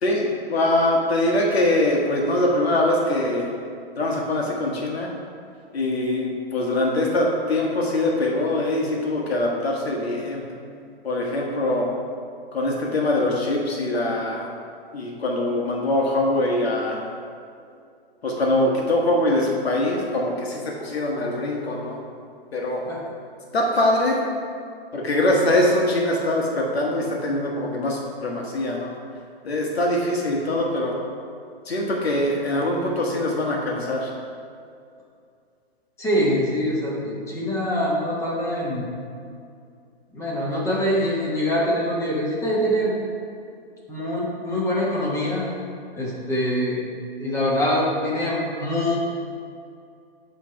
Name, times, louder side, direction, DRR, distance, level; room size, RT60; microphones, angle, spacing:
voice 1, 0.0-3.5 4.0-5.1 5.7-10.4 11.0-11.9 12.5-14.5 14.9-17.1 18.2-22.0 22.5-22.8 23.5-24.2 24.9-28.9 29.4-30.9 31.6-34.1, left 1 dB, 80° left, -1 dB, 1.3 m, -23 dB
voice 2, 36.0-38.9 40.1-42.9 43.9-45.5 46.0-46.8 47.2-49.0, equal, 10° left, -5 dB, 1.2 m, -24 dB
7.1 x 3.3 x 5.7 m, 2.4 s
hypercardioid pair, 140°, 31 cm